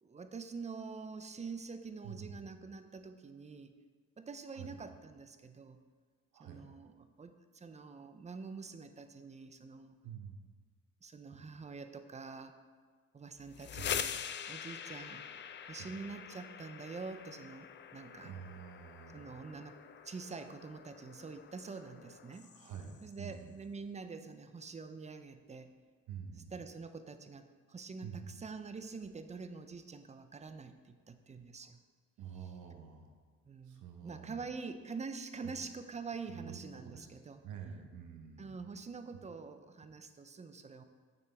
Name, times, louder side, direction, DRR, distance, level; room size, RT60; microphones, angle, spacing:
voice 1, 0.0-3.7 4.2-5.8 6.4-10.0 11.0-12.6 13.1-14.2 14.5-15.3 15.7-18.3 19.1-19.8 20.0-22.5 23.0-25.7 26.5-31.8 33.5-37.4 38.4-40.9, right 4 dB, 25° right, 9 dB, 0.5 m, -46 dB
voice 2, 2.0-2.5 4.5-4.9 6.3-6.7 10.0-10.4 11.3-11.4 13.8-14.1 15.8-15.9 18.2-19.4 22.4-23.5 26.1-26.6 28.0-28.4 32.2-33.1 33.6-34.4 35.4-35.5 36.2-37.1 37.4-38.7, right 7 dB, 85° right, 3 dB, 1.0 m, -48 dB
sound 1, 13.4-23.1, left 8 dB, 40° left, 0.4 m, -44 dB
7.1 x 6.0 x 3.4 m, 1.5 s
cardioid pair, 90°, 30 cm